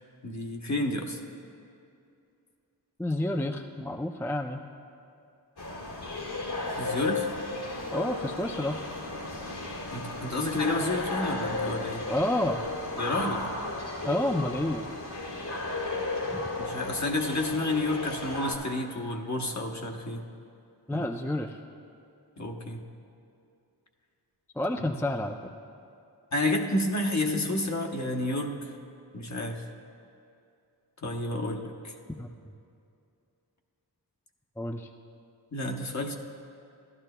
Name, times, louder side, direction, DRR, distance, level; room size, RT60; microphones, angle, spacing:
voice 1, 0.2-1.2 6.7-7.3 9.9-12.1 13.0-13.4 16.6-20.3 20.9-21.1 22.4-22.8 24.8-24.9 26.3-28.7 29.1-29.6 31.0-31.9 35.5-36.1, left 2 dB, 45° left, 1 dB, 0.9 m, -30 dB
voice 2, 3.0-4.6 7.9-8.8 12.1-12.6 14.0-14.9 16.3-16.4 20.9-21.6 24.6-25.5 32.2-32.3 34.6-34.9, left 1 dB, 5° left, 3 dB, 0.4 m, -29 dB
sound 1, 5.6-18.5, left 2 dB, 75° left, 1.8 m, -34 dB
15.0 x 12.0 x 2.2 m, 2.5 s
wide cardioid pair, 70°, 40 cm